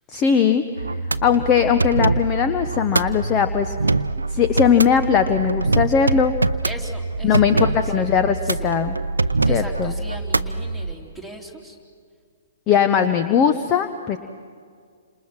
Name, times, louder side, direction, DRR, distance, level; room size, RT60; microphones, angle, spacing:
voice 1, 0.1-0.6 1.2-3.8 4.3-6.3 7.2-9.0 9.5-10.0 12.7-14.2, left 7 dB, 25° left, 9 dB, 1.0 m, -19 dB
sound 1, 0.8-10.9, right 3 dB, 80° right, 0.7 m, -24 dB
voice 2, 6.6-8.0 8.4-8.7 9.4-11.8, equal, 10° left, 2 dB, 3.4 m, -39 dB
29.5 x 27.0 x 6.1 m, 2.1 s
figure-of-eight pair, 120°, 0 cm